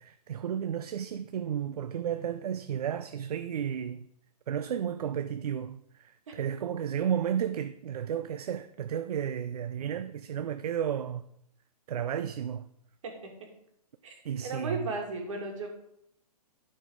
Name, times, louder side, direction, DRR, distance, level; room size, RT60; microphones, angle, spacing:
voice 1, 0.0-4.1 4.5-11.2 11.9-12.7 14.2-14.9, right 9 dB, 70° right, 0.5 m, -33 dB
voice 2, 14.4-15.7, right 3 dB, 55° right, 2.4 m, -35 dB
12.5 x 4.5 x 4.8 m
hypercardioid pair, 170°, 20 cm